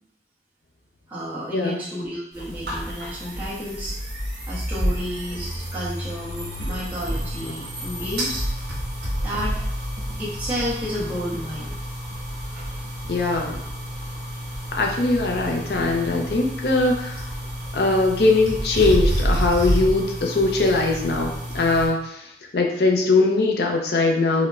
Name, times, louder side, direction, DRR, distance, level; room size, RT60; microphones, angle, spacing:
voice 1, 1.1-4.0 4.5-8.5 9.2-9.7 10.2-11.8, equal, 10° right, -9 dB, 0.9 m, -31 dB
sound 1, 2.3-21.9, equal, 65° right, 1.4 m, -29 dB
voice 2, 13.1-13.6 14.7-17.2 17.7-22.3 22.5-24.5, left 3 dB, 65° left, 1 dB, 0.6 m, -21 dB
4.8 x 2.1 x 2.4 m, 0.72 s
head